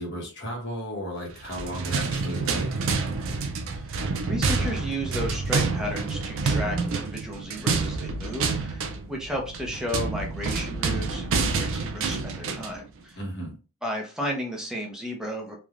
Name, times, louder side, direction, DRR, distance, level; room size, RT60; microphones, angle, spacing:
voice 1, 0.0-2.7 13.2-13.6, equal, 55° left, 1 dB, 1.0 m, -34 dB
sound 1, 1.4-12.8, right 4 dB, 60° right, 0.4 m, -28 dB
voice 2, 4.3-13.2 13.8-15.6, equal, 5° right, 0 dB, 0.6 m, -33 dB
3.2 x 2.2 x 2.4 m, 0.33 s
head